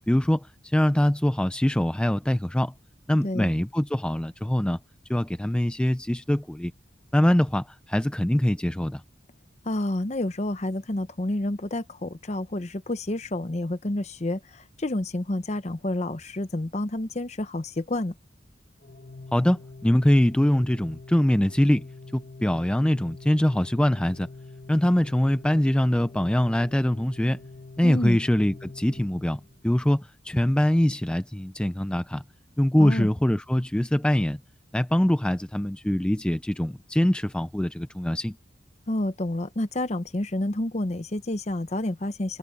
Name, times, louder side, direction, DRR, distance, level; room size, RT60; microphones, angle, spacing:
voice 1, 0.1-2.7 3.1-4.8 5.1-6.7 7.1-9.0 19.3-21.9 22.1-24.3 24.7-27.4 27.8-32.2 32.6-34.4 34.7-38.4, left 1 dB, 5° left, 0.3 m, -23 dB
voice 2, 3.2-3.5 9.6-18.1 27.8-28.2 32.8-33.1 38.9-42.4, left 1 dB, 35° left, 0.8 m, -29 dB
Organ, 18.8-29.7, left 3 dB, 60° left, 1.7 m, -45 dB
head